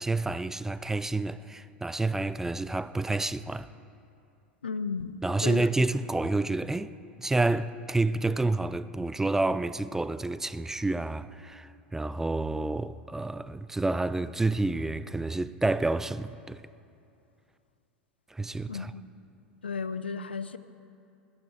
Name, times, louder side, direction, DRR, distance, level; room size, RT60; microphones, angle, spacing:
voice 1, 0.0-3.7 5.2-16.6 18.3-18.9, right 2 dB, 10° right, 0.3 m, -29 dB
voice 2, 4.6-5.7 18.7-19.0 19.6-20.6, left 5 dB, 80° left, 0.5 m, -34 dB
20.5 x 12.5 x 3.6 m
figure-of-eight pair, 85°, 6 cm